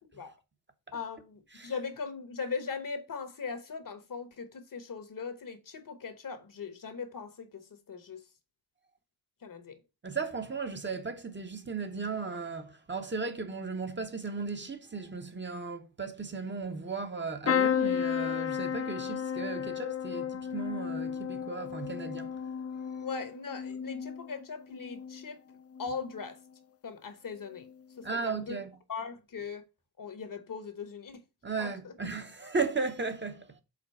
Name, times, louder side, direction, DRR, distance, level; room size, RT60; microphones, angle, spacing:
voice 1, 0.9-8.2 9.4-9.8 23.0-25.4 25.8-26.4 26.8-27.7 28.0-28.6 28.9-29.6 30.0-31.2 31.6-31.9, left 5 dB, 55° left, 1.0 m, -39 dB
voice 2, 10.0-22.3 28.0-28.7 31.4-33.5, right 4 dB, 30° right, 0.8 m, -36 dB
sound 1, 17.5-25.3 25.7-26.3 27.5-27.7 28.0-28.1, left 8 dB, 35° left, 0.6 m, -33 dB
5.1 x 3.8 x 5.3 m
wide cardioid pair, 105°, 40 cm